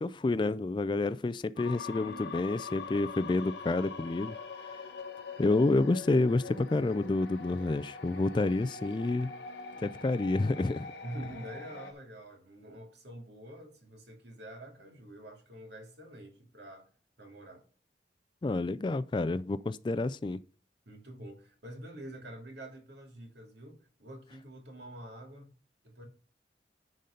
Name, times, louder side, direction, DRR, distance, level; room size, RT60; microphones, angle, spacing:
voice 1, 0.0-4.4 4.7-4.8 5.4-9.3 9.8-10.9 18.4-20.4, left 2 dB, 25° left, 0.3 m, -29 dB
sound 1, 1.6-11.9, left 5 dB, 85° left, 1.1 m, -43 dB
voice 2, 11.0-16.9 17.2-17.6 20.9-25.5 25.8-26.1, right 1 dB, 75° right, 2.6 m, -46 dB
10.5 x 3.9 x 5.2 m
head